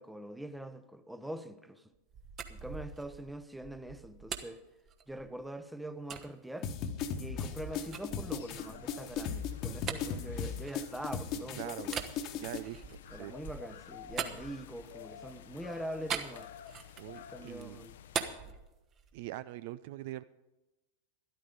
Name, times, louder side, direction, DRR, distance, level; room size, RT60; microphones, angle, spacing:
voice 1, 0.0-1.9 2.5-4.6 5.1-6.7 7.1-12.0 12.3-12.5 13.1-16.5 17.3-17.9 18.4-18.5, right 1 dB, 5° right, 0.8 m, -43 dB
sound 1, 1.9-5.5 6.1-6.3 6.8-11.3 11.8-15.1 16.1-17.2 17.5-19.3, right 7 dB, 30° right, 1.1 m, -42 dB
sound 2, 6.6-12.6, left 7 dB, 40° left, 1.2 m, -37 dB
sound 3, 7.2-18.3, left 10 dB, 60° left, 0.7 m, -52 dB
voice 2, 11.5-11.9 12.4-13.3 17.0-17.8 19.1-20.2, right 15 dB, 50° right, 0.4 m, -43 dB
12.5 x 12.0 x 5.0 m
figure-of-eight pair, 90°, 0 cm